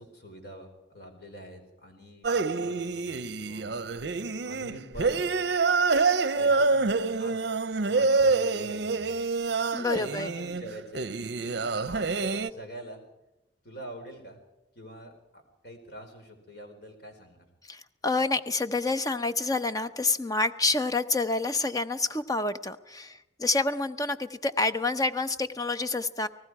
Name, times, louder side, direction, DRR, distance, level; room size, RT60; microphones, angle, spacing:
voice 1, 0.0-4.1 4.4-5.4 6.3-6.9 7.2-7.3 7.7-9.2 10.0-11.1 11.4-13.0 13.6-14.4 14.7-17.5, right 1 dB, 60° left, 4 dB, 4.3 m, -45 dB
sound 1, 2.2-12.5, right 4 dB, 60° right, 0.6 m, -27 dB
voice 2, 9.7-10.3 17.7-26.3, left 3 dB, 20° left, 11 dB, 0.7 m, -28 dB
29.0 x 19.0 x 4.8 m, 0.89 s
head